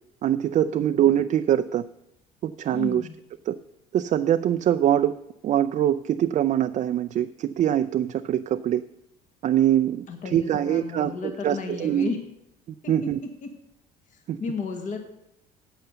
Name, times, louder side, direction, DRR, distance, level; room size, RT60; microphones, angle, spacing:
voice 1, 0.2-1.8 2.4-3.0 3.5-3.6 3.9-5.2 5.4-8.8 9.4-12.1 12.9-13.2 14.3-14.4, right 11 dB, 45° right, 9 dB, 0.4 m, -23 dB
voice 2, 2.7-3.2 10.1-12.2 12.8-13.1 13.4-13.5 14.1-15.0, left 5 dB, 50° left, 5 dB, 1.7 m, -33 dB
8.0 x 7.9 x 6.8 m, 0.83 s
supercardioid pair, 80°, 17 cm